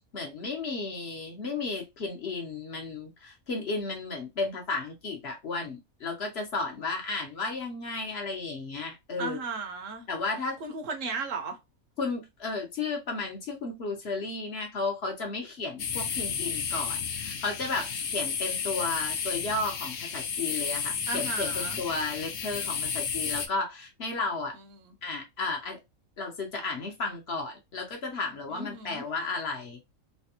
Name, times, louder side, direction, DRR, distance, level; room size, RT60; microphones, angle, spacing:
voice 1, 0.1-9.4 10.1-10.6 12.0-24.6 25.0-25.8 26.2-29.8, left 3 dB, 55° left, 1.0 m, -33 dB
voice 2, 9.2-10.1 10.6-11.6 21.1-21.8 24.8-24.9 28.5-29.1, right 4 dB, 70° right, 1.1 m, -35 dB
sound 1, 15.8-23.5, left 6 dB, 70° left, 0.9 m, -32 dB
3.3 x 2.2 x 2.7 m
omnidirectional pair, 1.5 m